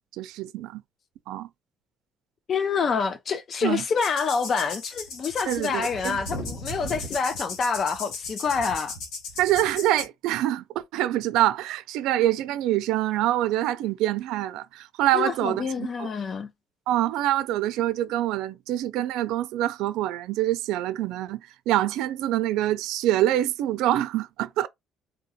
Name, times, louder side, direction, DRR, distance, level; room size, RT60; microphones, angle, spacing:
voice 1, 0.2-0.8 1.3-1.5 3.6-3.8 5.5-6.2 9.4-16.1 16.9-24.7, right 13 dB, 90° right, 0.4 m, -25 dB
voice 2, 2.5-9.0 15.1-16.5, left 5 dB, 45° left, 0.5 m, -27 dB
sound 1, 4.0-10.1, left 3 dB, 90° left, 1.1 m, -36 dB
3.7 x 2.2 x 2.8 m
cardioid pair, 120°, 0 cm